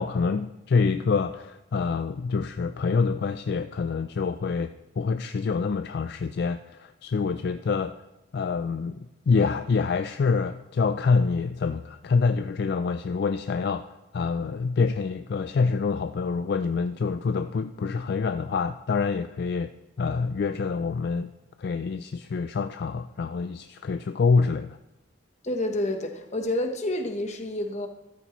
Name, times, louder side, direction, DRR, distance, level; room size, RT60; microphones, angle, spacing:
voice 1, 0.0-7.9 8.3-13.9 14.1-19.7 20.0-21.3 21.6-24.8, left 4 dB, 55° left, 0.4 m, -26 dB
voice 2, 25.4-27.9, left 1 dB, 35° left, 1.0 m, -29 dB
13.5 x 12.5 x 3.0 m
head